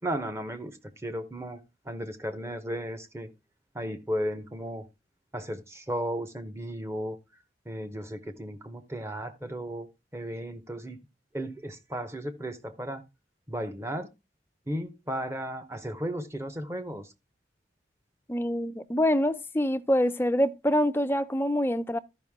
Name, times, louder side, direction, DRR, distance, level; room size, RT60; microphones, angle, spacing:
voice 1, 0.0-3.3 3.7-4.9 5.3-7.2 7.6-11.0 11.3-13.0 13.5-14.1 14.7-17.1, equal, 15° right, 0.9 m, -35 dB
voice 2, 18.3-22.0, equal, 15° left, 0.4 m, -25 dB
13.0 x 5.4 x 3.6 m
head